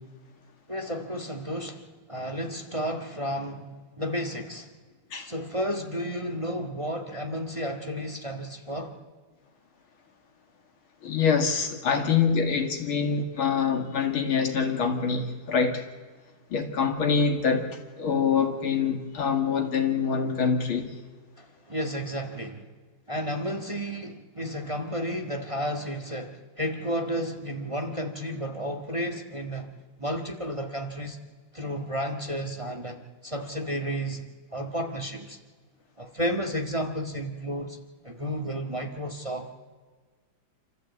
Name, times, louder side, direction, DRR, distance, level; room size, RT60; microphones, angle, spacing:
voice 1, 0.7-1.8 2.1-3.7 4.0-4.7 5.2-8.9 21.4-22.6 23.1-29.7 30.0-31.2 31.5-35.4 36.0-37.8 38.0-39.5, equal, 15° right, 3 dB, 1.5 m, -32 dB
voice 2, 11.0-15.9 16.5-17.7 18.0-20.9, left 6 dB, 80° left, 4 dB, 2.9 m, -25 dB
28.0 x 13.5 x 8.4 m, 1.4 s
omnidirectional pair, 2.3 m